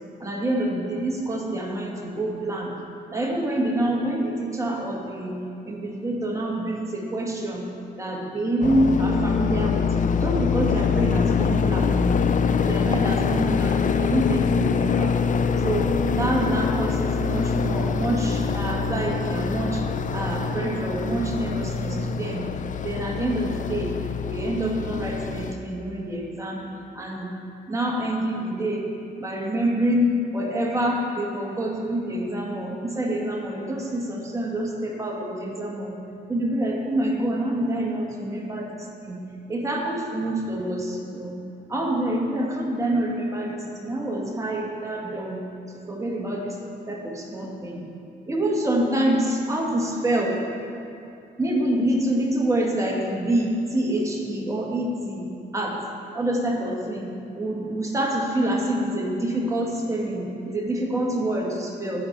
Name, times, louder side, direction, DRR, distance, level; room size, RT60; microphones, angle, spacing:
voice 1, 0.2-2.7 3.1-5.4 5.6-7.6 8.0-9.9 10.2-11.9 12.6-15.2 15.6-19.8 20.1-22.5 22.8-23.9 24.3-26.6 26.9-27.3 27.7-28.9 29.2-36.0 36.3-38.8 39.0-39.2 39.5-41.4 41.7-45.4 45.7-46.6 46.9-47.8 48.3-50.4 51.4-55.3 55.5-55.8 56.1-62.0, right 1 dB, 15° right, -2 dB, 2.0 m, -26 dB
sound 1, 8.6-25.5, left 6 dB, 40° left, 0.5 m, -24 dB
14.5 x 5.0 x 5.9 m, 2.7 s
cardioid pair, 90°, 20 cm